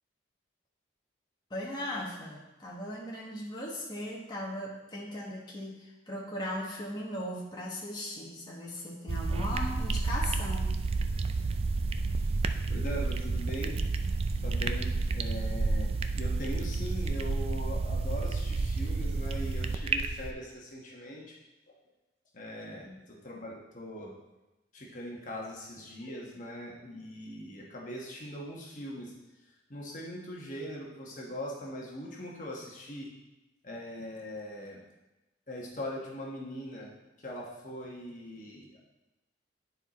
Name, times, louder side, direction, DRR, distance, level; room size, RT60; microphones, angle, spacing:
voice 1, 1.5-11.0 22.8-23.0, left 1 dB, 25° left, -4 dB, 1.2 m, -38 dB
sound 1, 9.1-20.3, right 3 dB, 30° right, 0.3 m, -30 dB
voice 2, 12.7-13.8 14.4-21.3 22.3-24.1 24.7-29.1 29.7-33.1 33.6-34.8 35.5-36.9 37.2-38.8, equal, 45° left, -3 dB, 1.2 m, -41 dB
10.0 x 4.6 x 4.1 m, 1.0 s
head